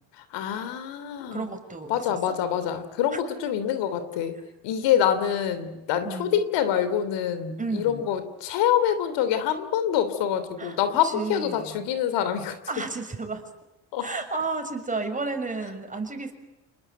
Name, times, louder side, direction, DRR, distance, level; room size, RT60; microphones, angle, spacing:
voice 1, 0.3-1.5 1.9-4.4 4.6-12.6 13.9-14.1, left 9 dB, 85° left, 12 dB, 3.2 m, -26 dB
voice 2, 1.3-2.4 6.0-6.4 7.6-8.0 10.6-10.8 11.0-11.9 12.7-13.4 14.0-16.3, right 3 dB, 20° right, 5 dB, 6.5 m, -32 dB
29.5 x 20.5 x 9.2 m, 0.97 s
cardioid pair, 95°, 42 cm